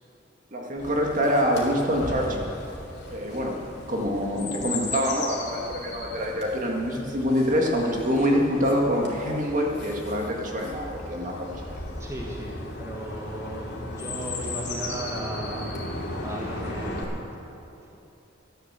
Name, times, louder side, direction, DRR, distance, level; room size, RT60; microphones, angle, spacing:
voice 1, 0.5-2.5 3.1-3.5 3.9-11.5, equal, 45° right, 0 dB, 1.8 m, -25 dB
Chirp tweet, 0.8-17.0, left 2 dB, 60° left, 2.7 m, -36 dB
voice 2, 12.0-15.7 16.2-17.1, right 1 dB, 15° right, -2 dB, 1.6 m, -35 dB
13.5 x 11.0 x 7.5 m, 2.8 s
head